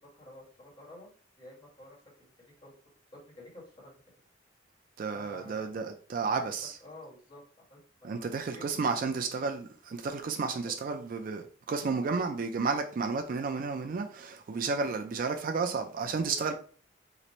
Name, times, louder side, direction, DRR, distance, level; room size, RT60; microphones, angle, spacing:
voice 1, 0.2-2.7 3.1-4.0 5.1-5.7 6.3-6.4 6.8-7.4 7.7-8.2 8.5-8.6 10.6-10.7 16.3-16.5, left 1 dB, 25° left, 1.7 m, -51 dB
voice 2, 5.0-6.8 8.0-16.5, right 4 dB, 45° right, 0.4 m, -32 dB
3.0 x 2.5 x 4.1 m
head